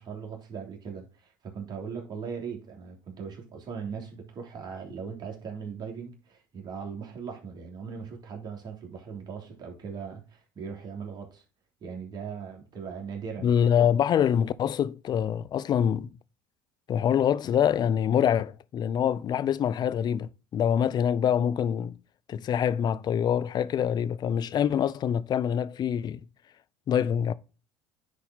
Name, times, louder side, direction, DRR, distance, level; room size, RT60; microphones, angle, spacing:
voice 1, 0.0-11.4 11.8-14.0, right 6 dB, 45° right, 3.1 m, -39 dB
voice 2, 13.4-16.1 16.9-22.0 22.3-26.2 26.9-27.3, left 9 dB, 45° left, 0.6 m, -25 dB
10.0 x 4.2 x 4.0 m
hypercardioid pair, 70°, 10 cm